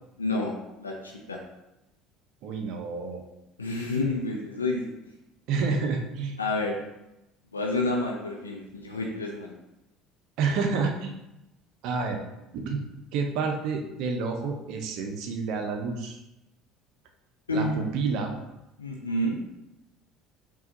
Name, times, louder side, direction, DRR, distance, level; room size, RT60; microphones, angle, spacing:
voice 1, 0.2-0.5 0.8-1.4 3.6-4.9 6.4-6.8 7.5-9.5 17.5-17.8 18.8-19.4, left 2 dB, 90° left, -1 dB, 0.4 m, -29 dB
voice 2, 2.4-3.2 5.5-6.4 10.4-11.2 11.8-12.2 12.5-12.8 13.1-16.2 17.5-18.3, right 4 dB, 60° right, 3 dB, 0.6 m, -29 dB
5.6 x 2.3 x 2.7 m, 0.93 s
figure-of-eight pair, 65°, 0 cm